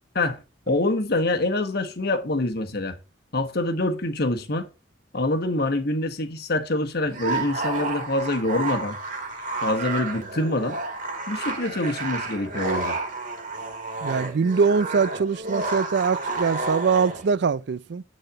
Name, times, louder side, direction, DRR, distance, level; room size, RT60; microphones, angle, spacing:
voice 1, 0.7-3.0 3.3-4.7 5.1-9.0 9.6-10.8 11.3-13.0, left 2 dB, 55° left, 1.3 m, -25 dB
sound 1, 7.1-17.3, right 3 dB, 45° right, 2.1 m, -30 dB
voice 2, 14.0-18.0, right 5 dB, 60° right, 0.4 m, -23 dB
9.9 x 4.2 x 6.8 m
head